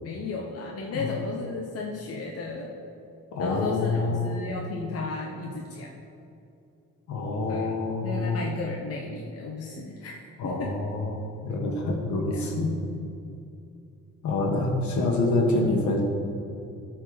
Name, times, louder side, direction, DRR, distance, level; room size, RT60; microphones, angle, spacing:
voice 1, 0.0-2.7 3.4-5.9 7.5-7.7 8.0-10.7 12.3-12.5 15.5-15.7, left 3 dB, 50° left, -1 dB, 1.0 m, -34 dB
voice 2, 3.3-4.3 7.1-8.4 10.4-12.7 14.2-16.0, left 2 dB, 70° left, 1 dB, 1.8 m, -26 dB
13.0 x 4.5 x 5.1 m, 2.6 s
cardioid pair, 90°, 30 cm